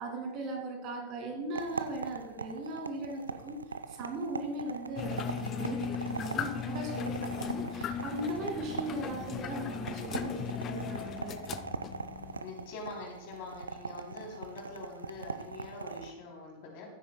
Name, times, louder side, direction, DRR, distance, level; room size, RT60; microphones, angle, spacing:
voice 1, 0.0-3.6 3.9-11.3, right 2 dB, 40° right, 2 dB, 2.2 m, -38 dB
sound 1, 1.5-16.1, right 4 dB, 75° right, 0.5 m, -41 dB
sound 2, 5.0-12.4, left 8 dB, 30° left, 0.5 m, -37 dB
voice 2, 12.4-16.9, left 3 dB, 50° left, 0 dB, 3.2 m, -44 dB
15.0 x 9.3 x 2.2 m, 1.0 s
figure-of-eight pair, 90°, 0 cm